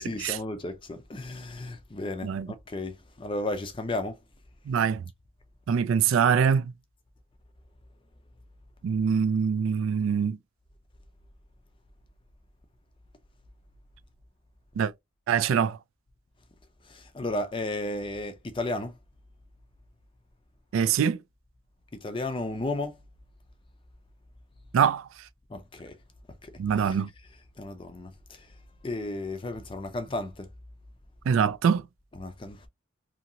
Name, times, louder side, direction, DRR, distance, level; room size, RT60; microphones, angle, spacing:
voice 1, 0.0-4.2 16.9-18.9 21.9-23.0 25.5-26.0 26.4-26.5 26.8-26.9 27.6-28.1 28.8-30.5 32.1-32.7, left 2 dB, 25° left, 0.4 m, -33 dB
voice 2, 4.7-5.0 5.7-6.7 8.8-10.4 14.8-14.9 15.3-15.8 20.7-21.2 24.7-25.1 26.6-27.1 31.3-31.8, right 7 dB, 70° right, 0.3 m, -24 dB
2.8 x 2.6 x 2.7 m
head